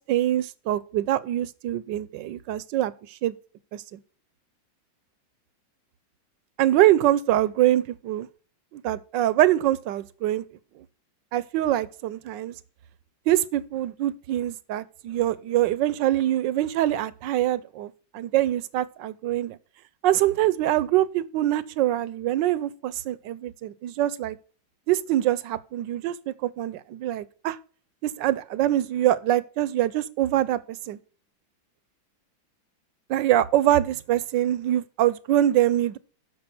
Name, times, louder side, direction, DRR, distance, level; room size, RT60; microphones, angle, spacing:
voice 1, 0.1-2.9 3.2-3.3 3.7-4.0 6.6-8.3 8.7-10.4 11.3-12.5 13.3-19.6 20.0-24.4 24.9-27.6 28.0-31.0 33.1-36.0, right 13 dB, 70° right, 1.3 m, -24 dB
12.5 x 5.1 x 5.9 m
omnidirectional pair, 2.2 m